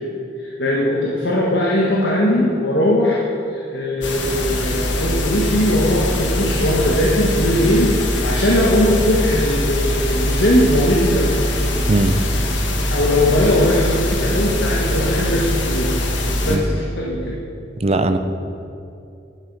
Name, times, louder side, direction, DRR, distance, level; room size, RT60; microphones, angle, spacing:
voice 1, 0.4-11.4 12.9-15.9 16.4-17.4, left 1 dB, 70° left, -4 dB, 1.5 m, -19 dB
sound 1, 4.0-16.6, left 1 dB, 85° left, 1.4 m, -22 dB
voice 2, 17.8-18.2, right 2 dB, 35° right, 8 dB, 0.5 m, -18 dB
11.5 x 10.5 x 4.8 m, 2.6 s
head